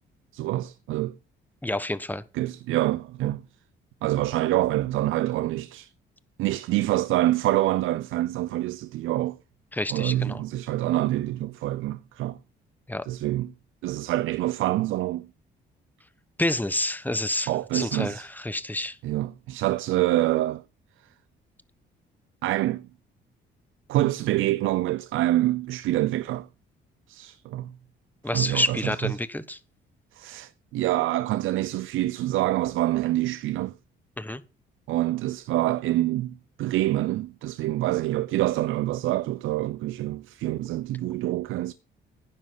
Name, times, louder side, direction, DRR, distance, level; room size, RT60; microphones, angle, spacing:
voice 1, 0.3-1.1 2.3-3.4 4.0-5.9 6.4-9.4 9.9-12.4 13.1-13.5 13.8-15.3 17.5-18.3 19.0-20.6 22.4-22.9 23.9-26.5 27.1-27.7 28.3-29.1 30.1-33.7 34.9-41.7, right 15 dB, 85° right, 0.6 m, -26 dB
voice 2, 1.6-2.2 9.7-10.4 12.9-13.0 16.4-19.0 28.2-29.6 34.2-34.4, left 1 dB, 10° left, 1.2 m, -28 dB
11.5 x 9.9 x 4.0 m
cardioid pair, 90°, 20 cm